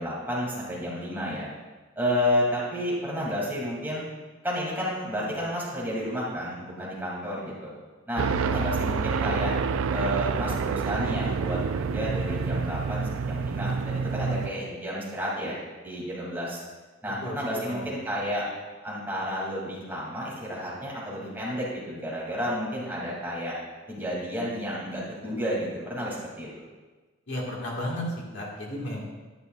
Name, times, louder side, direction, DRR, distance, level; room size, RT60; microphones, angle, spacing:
voice 1, 0.0-1.5 2.0-4.0 4.4-7.7 8.1-9.5 9.9-15.6 15.8-16.6 17.0-18.5 18.8-23.5 23.9-26.5, equal, 10° right, -7 dB, 2.9 m, -31 dB
sound 1, 8.2-14.5, right 5 dB, 80° right, 0.4 m, -28 dB
voice 2, 8.3-8.7 17.2-17.9 27.3-28.0 28.3-29.0, left 1 dB, 60° left, -3 dB, 2.0 m, -34 dB
11.0 x 11.0 x 2.5 m, 1.3 s
head